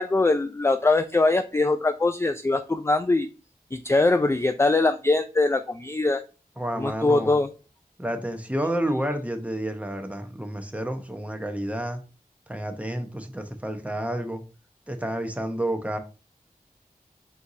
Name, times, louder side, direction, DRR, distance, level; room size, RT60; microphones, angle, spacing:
voice 1, 0.0-3.3 3.7-6.2 6.8-7.5, left 2 dB, 15° left, 8 dB, 0.3 m, -22 dB
voice 2, 6.6-7.4 8.0-12.0 12.5-14.4 14.9-16.0, right 1 dB, 10° right, 6 dB, 0.8 m, -30 dB
4.5 x 4.0 x 2.6 m, 0.33 s
wide cardioid pair, 40°, 16 cm